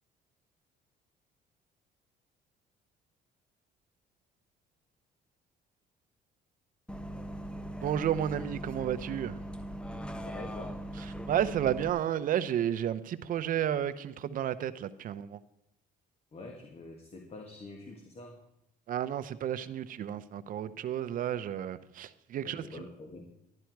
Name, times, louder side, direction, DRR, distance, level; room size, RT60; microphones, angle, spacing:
Bus, 6.9-11.9, right 1 dB, 5° left, 0.9 m, -40 dB
voice 1, 7.8-9.4 11.0-15.4 18.9-22.9, right 10 dB, 55° right, 13 dB, 0.7 m, -32 dB
voice 2, 10.2-10.8 16.3-18.4 22.4-23.3, left 2 dB, 35° left, 2 dB, 1.8 m, -46 dB
12.0 x 11.5 x 4.7 m, 0.82 s
cardioid pair, 110°, 17 cm